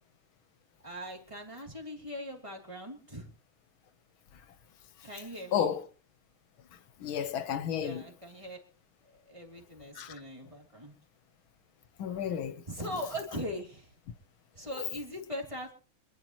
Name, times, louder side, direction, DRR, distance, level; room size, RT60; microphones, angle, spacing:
voice 1, 0.8-3.3 5.0-5.7 7.8-8.6 9.3-10.9 12.7-13.9 14.5-15.7, equal, 15° right, 3.0 m, -40 dB
voice 2, 5.5-5.8 7.0-8.0 10.0-10.1 12.0-12.5, left 8 dB, 70° left, 1.8 m, -31 dB
26.5 x 11.0 x 3.0 m
omnidirectional pair, 2.3 m